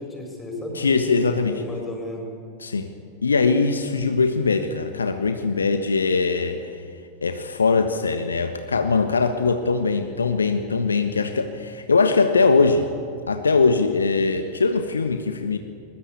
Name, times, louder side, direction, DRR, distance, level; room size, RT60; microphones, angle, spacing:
voice 1, 0.0-2.3, left 1 dB, 15° left, 1 dB, 7.0 m, -34 dB
voice 2, 0.7-1.6 2.6-2.9 3.2-6.8 7.2-12.9 13.3-15.6, left 4 dB, 75° left, 7 dB, 1.3 m, -21 dB
22.5 x 20.5 x 8.5 m, 2.3 s
figure-of-eight pair, 90°, 0 cm